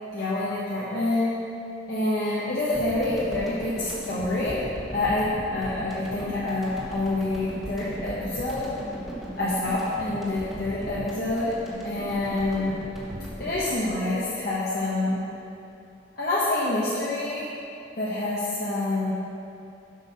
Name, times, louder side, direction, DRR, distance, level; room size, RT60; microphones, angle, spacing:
voice 1, 0.1-1.3 1.9-4.6 4.9-8.7 9.4-11.5 11.8-12.8 13.4-15.3 16.2-17.5 18.0-19.1, left 2 dB, 50° left, -9 dB, 1.2 m, -27 dB
sound 1, 2.7-15.2, right 1 dB, ahead, 1.4 m, -38 dB
7.9 x 6.3 x 5.6 m, 2.7 s
head